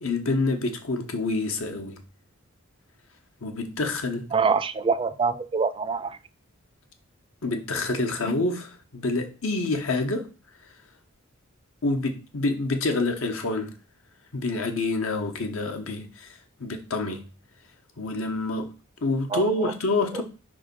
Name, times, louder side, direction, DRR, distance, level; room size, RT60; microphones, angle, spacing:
voice 1, 0.0-2.0 3.4-4.2 7.4-10.3 11.8-13.7 14.3-16.3 16.6-17.2 18.0-18.7 19.0-20.2, left 2 dB, 70° left, 1.0 m, -27 dB
voice 2, 4.3-6.2 19.3-19.7 20.1-20.2, right 5 dB, 25° right, 0.4 m, -25 dB
5.2 x 3.5 x 5.3 m
head